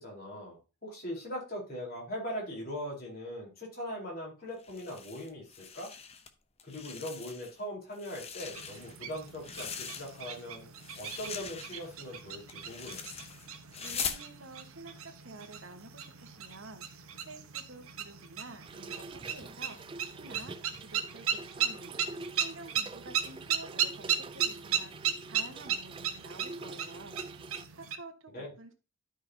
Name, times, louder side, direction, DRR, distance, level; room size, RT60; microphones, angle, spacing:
voice 1, 0.0-5.9 6.6-10.7 11.0-13.0 28.3-28.5, equal, 45° left, -3 dB, 4.0 m, -40 dB
sound 1, 4.6-6.3 6.6-7.6 7.9-10.4 10.7-14.3, left 6 dB, 30° left, 0.7 m, -42 dB
sound 2, 8.5-28.0, right 8 dB, 80° right, 1.1 m, -37 dB
voice 2, 13.8-16.9 17.3-19.8 20.1-20.6 20.8-22.0 22.3-27.2 27.8-28.7, right 2 dB, 65° right, 6 dB, 1.2 m, -50 dB
Trickle dribble / Fill (with liquid), 18.7-27.7, right 3 dB, 25° right, 0.3 m, -46 dB
12.0 x 5.3 x 2.8 m, 0.30 s
head